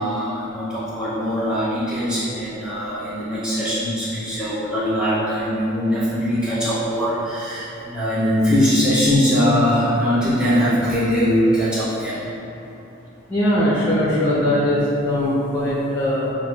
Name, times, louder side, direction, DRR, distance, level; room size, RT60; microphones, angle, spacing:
voice 1, 0.0-12.2, equal, 5° right, -11 dB, 0.9 m, -21 dB
voice 2, 13.3-16.3, left 1 dB, 15° left, -8 dB, 0.5 m, -20 dB
6.3 x 2.4 x 2.2 m, 2.9 s
head